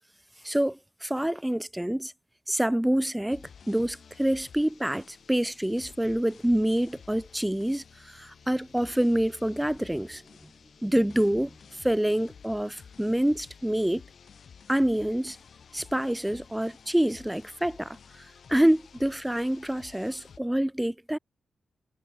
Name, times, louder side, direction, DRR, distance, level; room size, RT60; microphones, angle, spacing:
voice 1, 0.4-2.1 2.5-10.2 10.8-14.0 14.7-15.4 15.7-21.2, right 1 dB, 10° right, 0.9 m, -27 dB
sound 1, 3.3-20.4, left 6 dB, 65° left, 3.5 m, -52 dB
cardioid pair, 50°, 0 cm